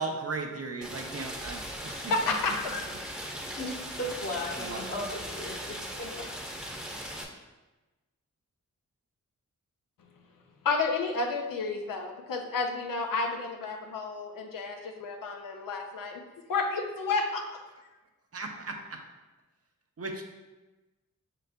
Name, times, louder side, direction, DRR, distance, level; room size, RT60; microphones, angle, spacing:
voice 1, 0.0-1.6 2.0-2.1 4.6-4.8 18.3-19.0 20.0-20.2, right 3 dB, 50° right, 3 dB, 0.7 m, -36 dB
Rain, 0.8-7.2, equal, ahead, 0.8 m, -39 dB
voice 2, 1.9-2.9 10.6-16.2 16.5-17.6, left 3 dB, 90° left, 2 dB, 0.6 m, -31 dB
voice 3, 3.5-6.2, left 1 dB, 50° left, -3 dB, 1.2 m, -36 dB
5.6 x 4.0 x 2.2 m, 1.1 s
cardioid pair, 45°, 32 cm